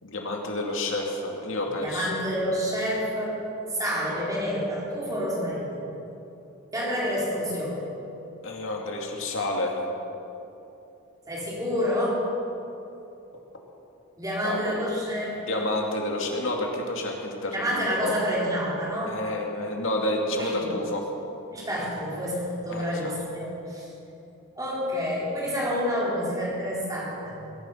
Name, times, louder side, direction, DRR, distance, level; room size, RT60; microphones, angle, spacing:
voice 1, 0.0-2.2 8.4-9.8 14.4-14.8 15.5-18.1 19.1-21.0 22.7-23.2, left 1 dB, 65° left, 0 dB, 2.3 m, -29 dB
voice 2, 1.7-3.4 3.7-5.8 6.7-7.9 11.3-12.3 14.2-15.7 17.5-19.2 20.4-20.7 21.5-23.9 24.6-27.4, equal, 15° right, -6 dB, 3.9 m, -28 dB
21.0 x 11.5 x 5.7 m, 2.9 s
head